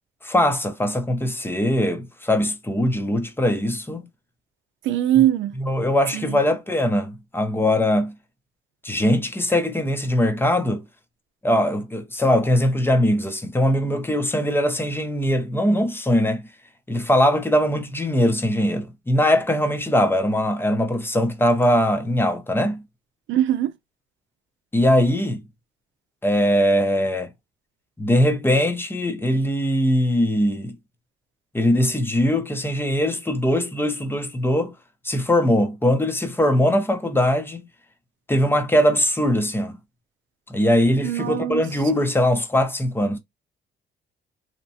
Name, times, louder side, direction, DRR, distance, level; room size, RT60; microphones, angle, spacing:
voice 1, 0.2-4.0 5.2-5.3 5.5-8.1 8.8-10.8 11.4-16.5 16.9-22.8 24.7-25.4 26.2-27.3 28.0-30.8 31.5-34.7 35.0-37.7 38.3-39.8 40.5-43.2, left 1 dB, 10° left, 0.7 m, -21 dB
voice 2, 4.9-5.5 6.1-6.4 23.3-23.7 41.0-41.6, right 12 dB, 75° right, 0.5 m, -21 dB
2.8 x 2.1 x 2.7 m
cardioid pair, 90°, 20 cm